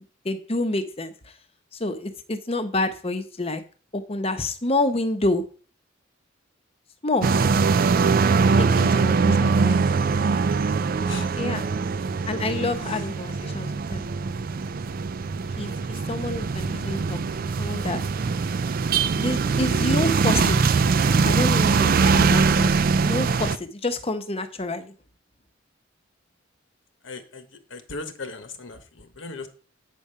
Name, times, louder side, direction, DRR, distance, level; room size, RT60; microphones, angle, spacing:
voice 1, 0.2-1.4 1.7-3.6 3.9-5.4 7.0-7.3 8.6-9.9 11.4-11.6 12.3-14.0 15.6-17.2 17.6-18.0 19.1-20.6 21.2-24.9, left 2 dB, 30° left, 9 dB, 0.8 m, -28 dB
sound 1, 7.2-23.6, right 4 dB, 45° right, 0.4 m, -22 dB
voice 2, 27.0-29.5, left 3 dB, 70° left, 8 dB, 1.1 m, -38 dB
8.4 x 5.0 x 5.5 m, 0.39 s
head